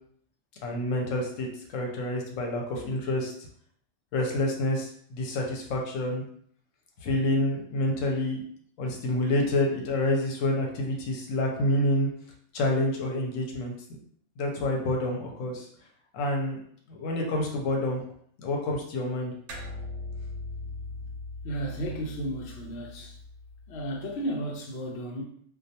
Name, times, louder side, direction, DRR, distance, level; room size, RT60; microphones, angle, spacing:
voice 1, 0.6-1.5 1.7-3.3 4.1-6.2 7.0-8.4 8.8-12.1 12.5-13.7 14.4-15.7 16.1-16.6 16.9-18.0 18.4-19.3, left 1 dB, 85° left, 1 dB, 1.0 m, -28 dB
sound 1, 19.5-24.2, left 2 dB, 70° right, 0.9 m, -40 dB
voice 2, 21.4-23.2 23.7-25.2, right 1 dB, 65° left, 0 dB, 0.8 m, -33 dB
2.2 x 2.2 x 2.7 m, 0.62 s
omnidirectional pair, 1.3 m